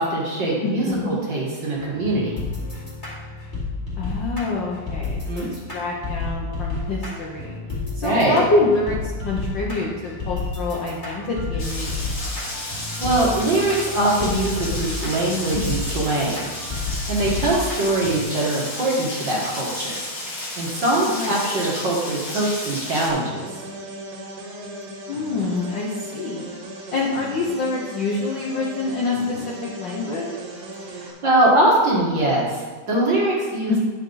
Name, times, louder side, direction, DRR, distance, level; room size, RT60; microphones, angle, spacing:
voice 1, 0.0-2.4 5.3-5.5 8.0-8.4 13.0-16.5 17.1-20.0 20.6-23.4 30.9-33.9, right 1 dB, 45° right, -5 dB, 1.9 m, -22 dB
voice 2, 0.6-1.2 4.0-7.6 7.9-12.0 15.5-15.6 21.1-21.3 25.1-26.6 26.9-30.3 33.7-33.9, left 3 dB, 85° left, -3 dB, 1.0 m, -26 dB
sound 1, 1.8-18.2, left 3 dB, 20° left, 1.9 m, -31 dB
Rain, 11.6-23.1, left 1 dB, 35° left, 1.5 m, -32 dB
sound 2, 23.1-31.1, right 1 dB, 60° right, 2.6 m, -37 dB
10.0 x 5.5 x 3.9 m, 1.4 s
omnidirectional pair, 3.4 m